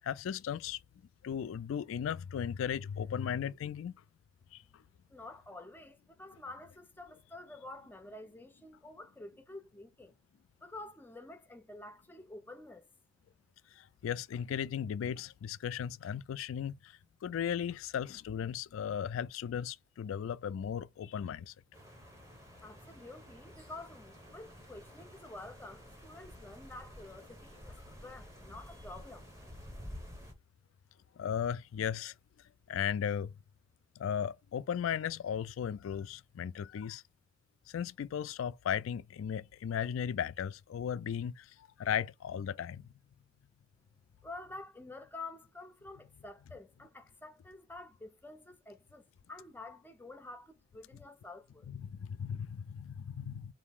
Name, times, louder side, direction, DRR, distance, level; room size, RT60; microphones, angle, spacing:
voice 1, 0.0-0.8 1.2-4.0 4.5-4.6 13.8-16.9 17.2-21.5 31.2-32.1 32.7-33.4 34.0-37.0 37.7-42.8 51.7-53.5, left 8 dB, 80° left, 0.3 m, -36 dB
voice 2, 5.1-10.1 10.6-12.8 22.6-29.3 44.2-51.7, left 2 dB, 10° left, 0.5 m, -49 dB
sound 1, 21.7-30.3, equal, 15° right, 1.0 m, -51 dB
3.9 x 2.6 x 3.6 m
head